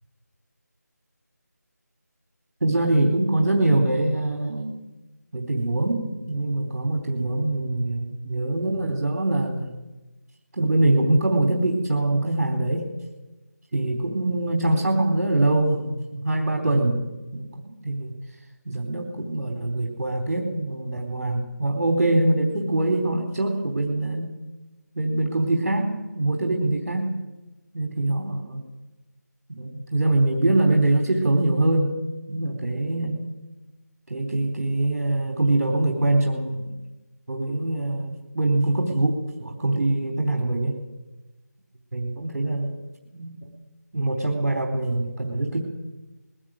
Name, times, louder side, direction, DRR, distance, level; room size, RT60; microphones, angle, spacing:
voice 1, 2.6-4.8 5.3-9.7 10.5-12.9 13.7-17.0 17.3-18.1 18.7-24.3 25.0-27.1 27.7-28.6 29.5-31.9 32.3-33.2 34.1-36.8 37.3-40.7 41.9-42.8 43.1-43.4 43.9-45.6, right 2 dB, 45° right, 1 dB, 4.0 m, -23 dB
21.0 x 17.0 x 9.0 m, 1.1 s
figure-of-eight pair, 175°, 9 cm